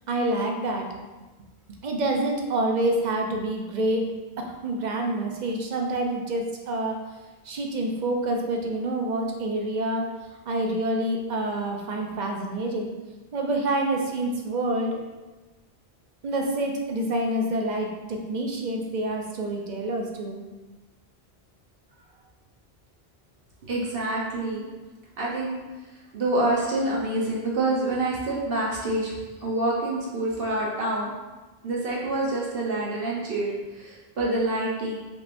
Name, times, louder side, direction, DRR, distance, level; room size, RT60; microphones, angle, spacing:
voice 1, 0.1-0.9 1.8-4.1 4.4-7.0 7.4-10.1 10.5-12.9 13.3-15.0 16.2-20.4, right 1 dB, 50° right, 1 dB, 0.7 m, -27 dB
voice 2, 23.7-24.7 25.2-25.6 26.1-31.1 31.6-34.9, right 2 dB, 65° right, -4 dB, 1.1 m, -27 dB
5.0 x 3.3 x 2.5 m, 1.2 s
omnidirectional pair, 1.0 m